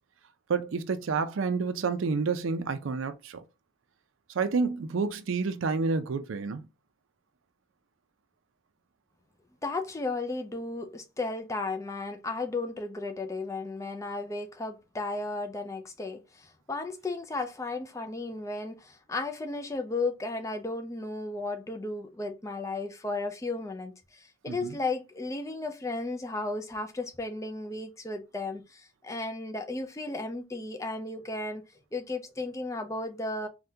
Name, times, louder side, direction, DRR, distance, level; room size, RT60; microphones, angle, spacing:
voice 1, 0.5-3.4 4.3-6.6 24.5-24.7, right 4 dB, 85° right, 0.5 m, -29 dB
voice 2, 9.6-31.6 31.9-33.5, left 2 dB, 15° left, 0.3 m, -34 dB
3.5 x 2.2 x 2.7 m
head